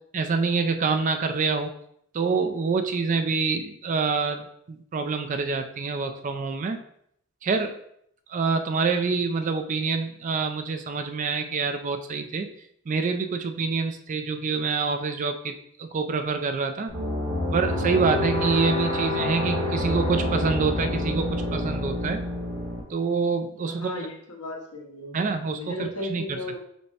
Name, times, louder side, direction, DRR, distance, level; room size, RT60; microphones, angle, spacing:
voice 1, 0.1-1.7 2.1-6.8 7.4-7.7 8.3-12.5 12.9-16.9 17.5-22.2 22.9-23.9 25.1-26.2, right 4 dB, 35° right, 7 dB, 0.3 m, -26 dB
sound 1, 16.9-22.8, left 1 dB, 55° right, 1.3 m, -27 dB
voice 2, 23.6-25.2 25.5-26.6, left 2 dB, 85° left, -1 dB, 1.1 m, -36 dB
5.2 x 2.1 x 4.7 m, 0.69 s
head